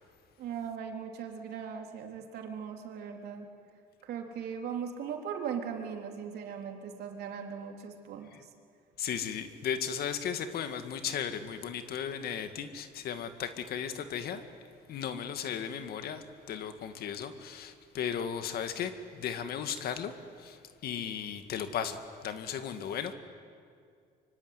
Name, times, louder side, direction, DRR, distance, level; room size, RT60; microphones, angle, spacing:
voice 1, 0.4-3.5 4.0-8.3, right 7 dB, 70° right, 3 dB, 3.6 m, -39 dB
voice 2, 9.0-14.4 14.9-23.1, left 8 dB, 65° left, 9 dB, 2.1 m, -36 dB
25.0 x 24.0 x 9.8 m, 2.3 s
cardioid pair, 110°, 17 cm